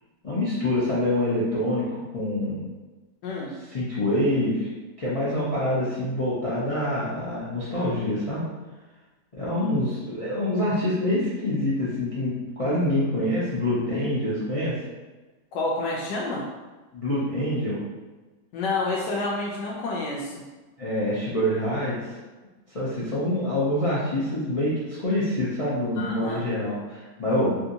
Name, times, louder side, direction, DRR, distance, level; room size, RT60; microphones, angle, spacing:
voice 1, 0.2-2.6 3.7-4.7 5.0-8.5 9.3-14.8 16.9-17.8 20.8-22.1 22.7-27.7, left 1 dB, 60° left, -10 dB, 0.3 m, -26 dB
voice 2, 3.2-3.5 13.9-14.0 15.5-16.5 18.5-20.4 26.0-26.4, left 2 dB, 85° left, -3 dB, 1.3 m, -29 dB
3.5 x 2.8 x 2.6 m, 1.2 s
omnidirectional pair, 1.8 m